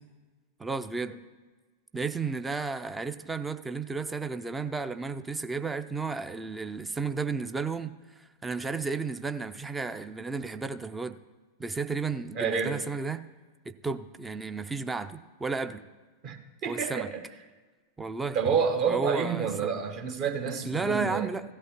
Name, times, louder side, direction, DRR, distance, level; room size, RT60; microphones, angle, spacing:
voice 1, 0.6-1.1 1.9-11.2 11.6-13.2 13.6-15.8 16.7-17.1 18.0-18.4 18.9-19.7 20.6-21.4, right 4 dB, 10° right, 10 dB, 0.5 m, -33 dB
voice 2, 12.3-12.8 16.2-17.2 18.3-21.3, right 6 dB, 40° right, 5 dB, 1.2 m, -29 dB
16.0 x 12.0 x 3.0 m, 1.3 s
figure-of-eight pair, 90°, 0 cm